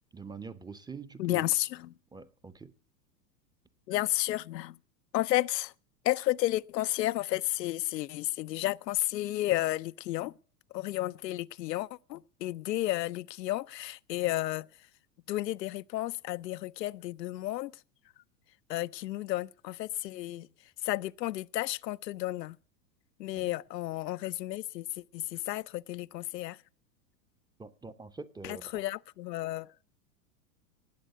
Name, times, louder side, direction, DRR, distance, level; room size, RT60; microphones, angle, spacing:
voice 1, 0.1-1.5 2.1-2.7 23.3-23.6 27.6-28.8, right 4 dB, 10° right, 0.7 m, -45 dB
voice 2, 1.2-1.7 3.9-4.7 5.1-5.7 6.1-10.3 10.7-14.7 15.3-17.7 18.7-20.5 20.8-22.6 23.2-24.8 25.1-26.6 28.7-29.7, left 15 dB, 75° left, 0.6 m, -32 dB
19.0 x 8.1 x 7.9 m
hypercardioid pair, 105°, 49 cm